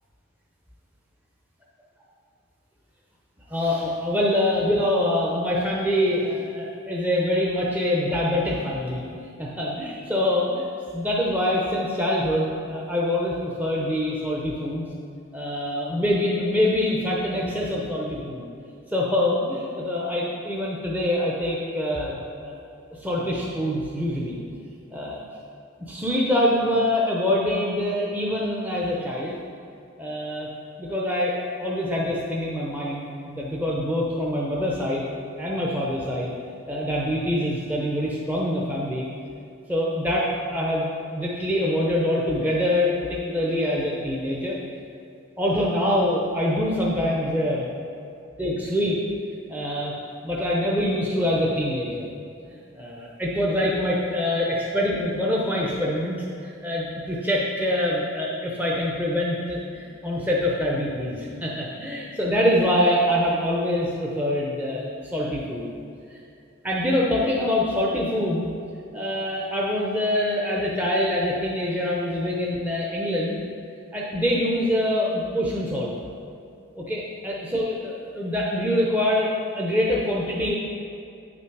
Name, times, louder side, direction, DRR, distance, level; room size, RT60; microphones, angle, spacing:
voice 1, 3.5-9.0 9.4-10.7 10.9-14.8 15.3-18.5 18.9-22.6 23.0-24.4 24.9-25.2 25.9-29.3 30.0-30.5 30.8-35.0 35.4-36.3 36.7-39.1 39.7-44.5 45.4-47.7 48.4-49.0 49.5-49.9 50.2-52.1 52.7-64.8 65.1-65.7 66.6-68.5 68.9-73.4 73.9-75.9 76.7-80.5, left 1 dB, 10° right, -4 dB, 0.6 m, -25 dB
8.6 x 6.0 x 4.6 m, 2.5 s
head